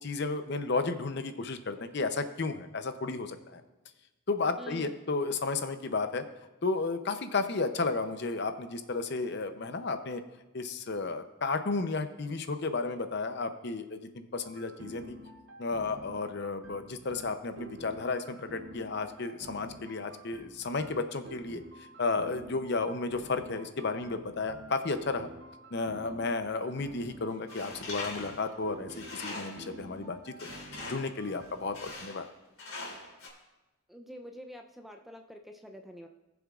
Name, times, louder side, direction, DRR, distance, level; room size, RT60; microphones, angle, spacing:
voice 1, 0.0-3.6 4.3-6.2 6.6-10.2 10.5-15.1 15.6-21.6 22.0-25.3 25.7-30.3 30.8-32.3, left 3 dB, 50° left, 9 dB, 0.6 m, -33 dB
voice 2, 4.6-5.0 33.9-36.1, equal, ahead, 3 dB, 0.5 m, -46 dB
sound 1, 14.4-31.9, right 1 dB, 65° right, 0.9 m, -49 dB
Tools, 27.5-29.7 30.4-31.2 31.7-32.3 32.6-33.3, left 2 dB, 75° left, 3.2 m, -42 dB
18.5 x 7.1 x 2.4 m, 1.1 s
head